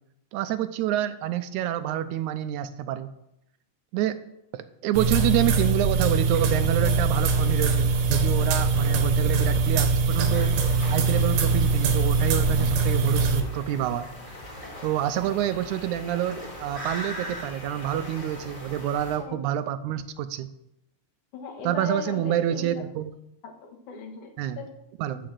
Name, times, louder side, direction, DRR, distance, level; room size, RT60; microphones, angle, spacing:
voice 1, 0.3-3.1 3.9-4.2 4.8-10.5 10.9-14.1 14.8-20.5 21.6-23.1 24.4-24.6 25.0-25.2, right 11 dB, 85° right, 12 dB, 2.1 m, -27 dB
sound 1, 4.9-13.4, right 4 dB, 70° right, 2.2 m, -22 dB
sound 2, 10.3-19.2, equal, 20° left, 2.0 m, -40 dB
voice 2, 21.3-22.8 23.4-24.9, left 5 dB, 75° left, 2 dB, 2.9 m, -38 dB
13.0 x 5.1 x 7.4 m, 0.81 s
omnidirectional pair, 3.4 m